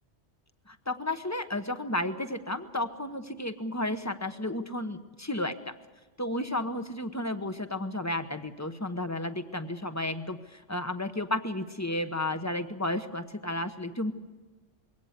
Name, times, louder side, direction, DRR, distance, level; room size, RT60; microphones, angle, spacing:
voice 1, 0.7-5.7 6.2-14.1, left 1 dB, 15° left, 9 dB, 1.0 m, -32 dB
22.0 x 17.0 x 8.2 m, 1.3 s
omnidirectional pair, 1.2 m